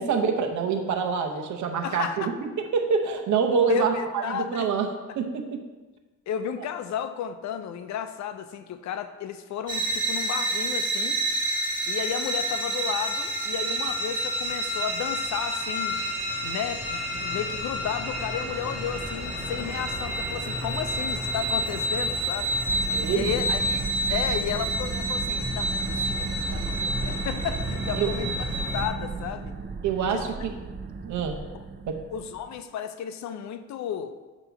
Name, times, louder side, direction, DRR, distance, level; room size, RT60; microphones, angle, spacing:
voice 1, 0.0-2.3 2.7-4.9 5.2-5.6 22.9-23.4 27.9-28.1 29.8-30.5 31.0-31.4 31.9-32.0, right 5 dB, 70° right, 4 dB, 0.9 m, -26 dB
voice 2, 1.8-2.3 3.7-4.7 6.3-11.2 11.9-16.0 16.4-22.6 23.1-29.6 30.0-30.2 31.5-31.6 32.1-34.2, left 8 dB, 65° left, 9 dB, 0.5 m, -33 dB
sound 1, 9.7-28.9, right 1 dB, 15° right, 1.9 m, -29 dB
sound 2, 22.7-32.6, right 4 dB, 35° right, 0.6 m, -35 dB
8.0 x 3.0 x 5.7 m, 1.2 s
cardioid pair, 90°, 30 cm